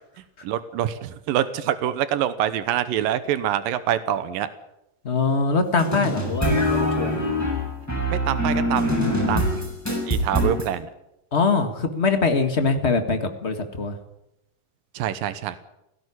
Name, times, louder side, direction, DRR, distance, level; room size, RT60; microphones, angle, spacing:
voice 1, 0.4-4.5 8.1-9.7 10.1-10.9 14.9-15.6, right 11 dB, 90° right, 13 dB, 2.7 m, -25 dB
voice 2, 5.0-7.2 11.3-14.0, left 4 dB, 35° left, 6 dB, 1.1 m, -23 dB
sound 1, 5.8-10.7, equal, 5° left, 7.4 m, -24 dB
17.0 x 16.5 x 9.8 m, 0.86 s
omnidirectional pair, 3.9 m